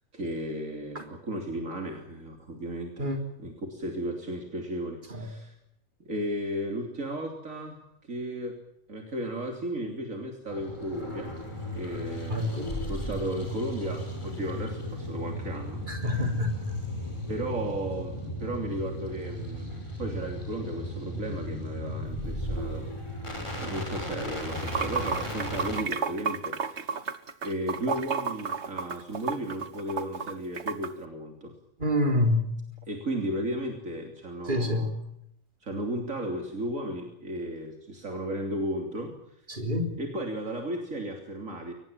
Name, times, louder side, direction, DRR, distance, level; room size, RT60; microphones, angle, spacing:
voice 1, 0.1-5.5 6.1-8.6 8.9-11.4 11.7-12.5 12.8-16.3 17.3-22.9 23.6-27.0 27.4-31.5 32.9-34.9 35.6-39.1 40.0-41.7, right 1 dB, 75° right, 3 dB, 3.6 m, -35 dB
sound 1, 10.5-25.8, equal, 20° left, 5.8 m, -35 dB
voice 2, 12.3-12.7 15.9-16.6 31.8-32.5 34.5-34.9 39.5-40.0, left 1 dB, 35° right, 4 dB, 4.0 m, -27 dB
Water / Sink (filling or washing), 24.4-30.9, right 5 dB, 55° right, 1.7 m, -32 dB
24.0 x 20.0 x 9.0 m, 0.76 s
omnidirectional pair, 1.4 m